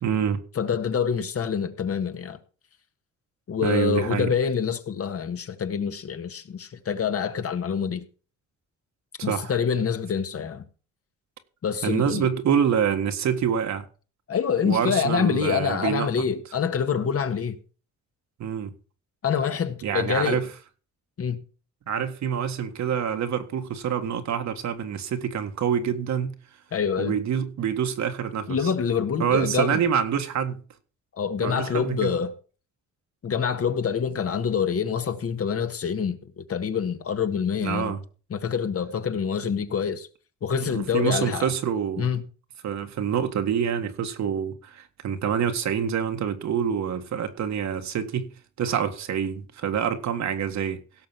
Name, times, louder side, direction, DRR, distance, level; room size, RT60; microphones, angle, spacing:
voice 1, 0.0-0.4 3.6-4.3 9.2-9.5 11.8-13.9 14.7-16.1 18.4-18.7 19.8-20.5 21.9-26.3 27.0-28.7 29.2-30.6 31.4-32.2 37.6-38.0 40.6-42.1 42.6-48.3 48.6-50.8, right 8 dB, 65° right, 1.8 m, -26 dB
voice 2, 0.5-2.4 3.5-8.0 9.2-10.6 11.6-12.3 14.3-17.6 19.2-20.4 21.2-21.4 26.7-27.2 28.5-29.8 31.2-32.3 33.2-38.0 38.3-40.1 40.4-41.5 42.0-42.2, left 7 dB, 50° left, 1.7 m, -26 dB
17.0 x 6.5 x 5.9 m
cardioid pair, 90°, 30 cm